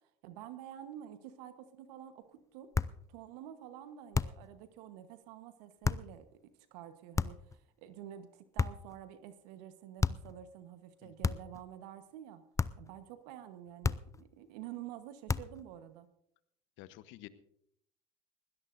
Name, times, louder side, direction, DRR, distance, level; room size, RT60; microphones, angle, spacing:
voice 1, 0.2-2.7 3.1-6.4 6.7-12.4 12.8-16.1, right 11 dB, 80° right, 10 dB, 1.2 m, -49 dB
sound 1, 2.7-3.0 4.1-4.5 5.8-6.1 7.1-7.5 8.6-9.0 10.0-10.3 11.2-11.6 12.6-12.9 13.8-14.2 15.3-15.6, left 4 dB, 15° left, 0.5 m, -33 dB
voice 2, 16.8-17.3, left 15 dB, 70° left, 14 dB, 1.0 m, -51 dB
21.0 x 17.0 x 2.6 m, 0.73 s
hypercardioid pair, 75°, 21 cm